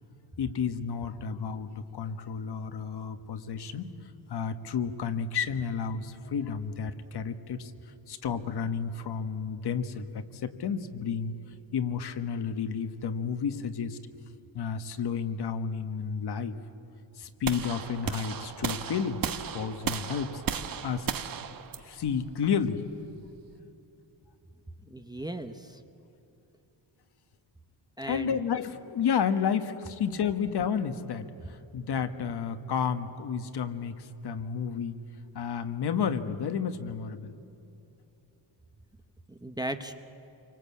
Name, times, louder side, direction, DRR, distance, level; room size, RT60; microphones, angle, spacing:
voice 1, 0.4-3.9 4.3-7.7 8.1-11.3 11.7-14.0 14.5-16.6 17.2-19.2 19.5-20.4 20.8-21.1 21.8-22.8 28.1-35.0 35.3-37.4, left 7 dB, 55° left, 9 dB, 1.4 m, -31 dB
sound 1, 17.4-23.5, right 7 dB, 45° right, 1.1 m, -35 dB
voice 2, 24.9-25.8 28.0-28.4 39.3-40.0, right 1 dB, 10° right, 6 dB, 0.8 m, -37 dB
28.0 x 24.5 x 8.5 m, 2.9 s
wide cardioid pair, 175°, 47 cm